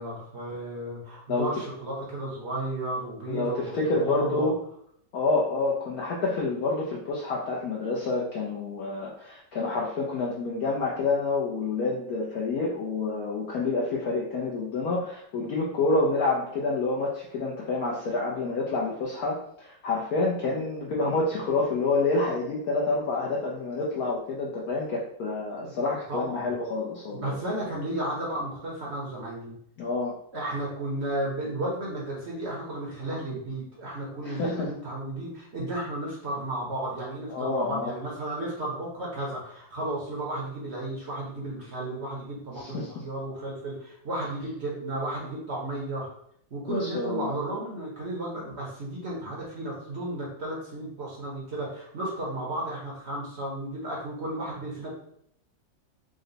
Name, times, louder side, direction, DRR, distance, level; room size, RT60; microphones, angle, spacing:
voice 1, 0.0-4.5 25.6-25.7 26.1-26.5 27.1-29.5 30.3-46.1 46.5-54.9, right 1 dB, 50° right, -4 dB, 0.8 m, -33 dB
voice 2, 3.3-4.6 5.1-27.4 29.8-30.1 34.2-34.7 37.3-37.8 42.6-42.9 46.7-47.4, left 3 dB, 70° left, -4 dB, 1.0 m, -28 dB
3.8 x 2.2 x 3.9 m, 0.69 s
omnidirectional pair, 2.1 m